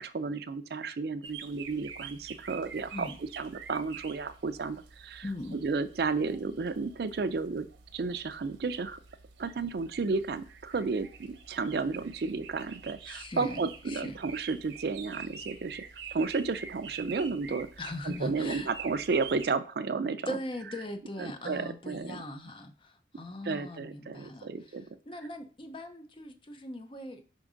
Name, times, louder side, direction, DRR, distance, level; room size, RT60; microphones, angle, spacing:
voice 1, 0.0-3.1 3.4-5.3 5.6-7.7 7.9-9.0 9.4-17.7 18.0-20.4 21.2-22.2 23.1-24.8, right 4 dB, 60° right, 12 dB, 0.4 m, -32 dB
sound 1, 1.2-19.5, right 6 dB, 90° right, 0.8 m, -47 dB
voice 2, 5.2-5.6 13.1-14.2 17.8-18.7 20.3-24.8 25.1-27.2, left 1 dB, 30° left, 7 dB, 0.6 m, -40 dB
5.1 x 3.7 x 5.0 m, 0.38 s
head